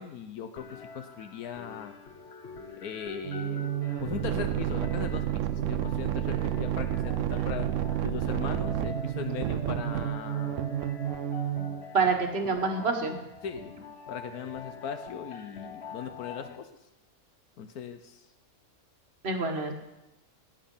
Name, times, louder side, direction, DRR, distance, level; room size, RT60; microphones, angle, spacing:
voice 1, 0.0-1.9 2.8-3.7 4.0-7.7 8.0-10.6 13.4-13.8 14.1-16.7 17.6-18.2, left 7 dB, 85° left, 8 dB, 1.3 m, -39 dB
sound 1, 0.6-16.6, left 4 dB, 50° left, 1.4 m, -45 dB
sound 2, 3.2-11.9, right 11 dB, 65° right, 0.9 m, -30 dB
voice 2, 11.9-13.2 19.2-19.7, right 4 dB, 45° right, 4 dB, 1.8 m, -27 dB
18.0 x 9.2 x 5.5 m, 0.98 s
omnidirectional pair, 1.5 m